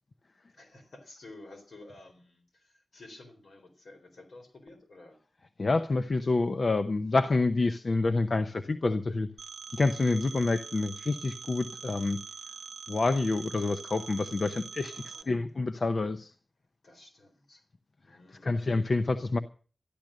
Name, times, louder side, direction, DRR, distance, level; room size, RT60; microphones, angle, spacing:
voice 1, 0.5-5.2 14.9-15.5 16.8-17.7 18.0-18.6, left 2 dB, 80° left, 4.1 m, -52 dB
voice 2, 5.6-9.3 9.7-12.2 12.9-16.3 18.1-18.2 18.4-19.4, left 3 dB, 60° left, 0.8 m, -28 dB
Telephone, 9.4-15.2, right 6 dB, 85° right, 0.7 m, -44 dB
13.5 x 12.0 x 6.4 m
cardioid pair, 50°, 0 cm